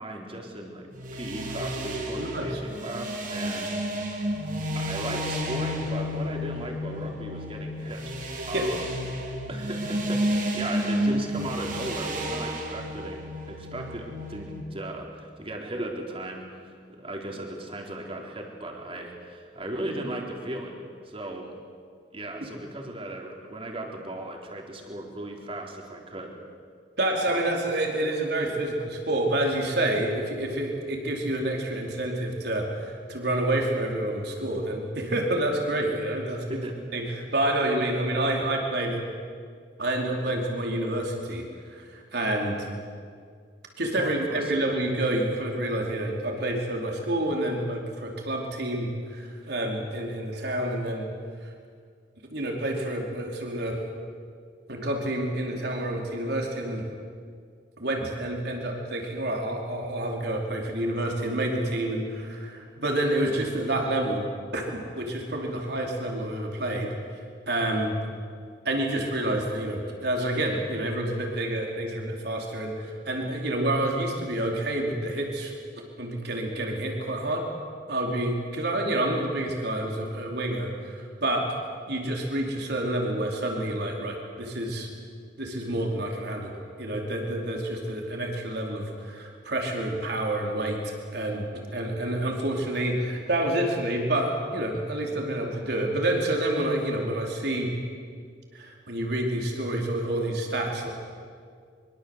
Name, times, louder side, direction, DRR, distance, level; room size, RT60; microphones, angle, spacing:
voice 1, 0.0-3.8 4.2-4.5 4.7-8.2 8.5-8.8 9.5-13.2 13.5-21.5 22.1-26.3 36.3-36.7 44.0-44.6, right 1 dB, 30° right, 1 dB, 4.0 m, -37 dB
sound 1, 0.9-14.6, equal, 50° right, 3.5 m, -31 dB
voice 2, 2.2-2.6 8.5-8.7 27.0-36.6 36.9-39.0 39.8-42.7 43.8-51.1 52.3-53.8 54.7-56.9 57.8-66.9 67.5-67.9 68.6-75.5 76.0-77.5 77.9-81.5 81.9-84.9 85.4-86.5 86.8-90.8 91.1-97.7 98.5-100.9, right 1 dB, 65° right, 1 dB, 4.7 m, -28 dB
24.5 x 24.0 x 8.2 m, 2.1 s
head